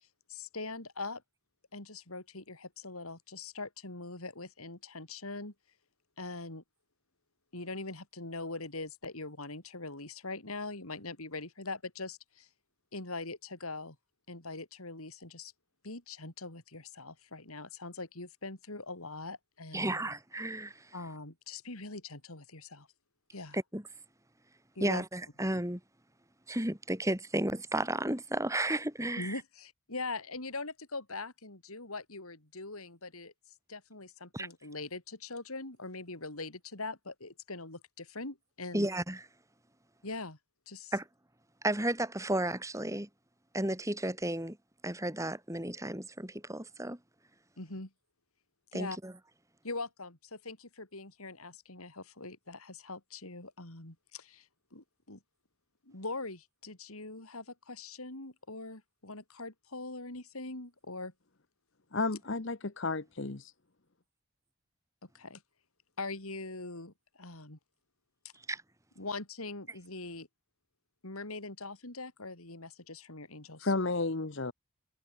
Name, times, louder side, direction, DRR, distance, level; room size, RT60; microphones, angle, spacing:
voice 1, 0.3-1.2 1.7-5.5 6.2-6.6 7.5-12.5 12.9-14.0 14.3-15.5 15.8-19.9 20.9-22.9 23.3-23.6 24.8-25.0 29.2-33.3 33.7-38.9 40.0-40.4 40.7-40.9 47.6-47.9 48.7-49.0 49.6-55.2 55.8-61.1 65.0-65.4 66.0-67.6 69.0-70.3 71.0-73.7, left 3 dB, 80° left, 4.3 m, -42 dB
voice 2, 19.7-20.9 23.5-23.8 24.8-25.8 26.5-29.4 34.3-34.5 38.7-39.2 40.9-41.0 41.6-43.1 43.5-44.6 44.8-47.0 48.7-49.1 68.5-68.6, right 1 dB, 15° right, 3.4 m, -33 dB
voice 3, 61.9-63.5 73.6-74.5, left 3 dB, 55° left, 1.1 m, -32 dB
head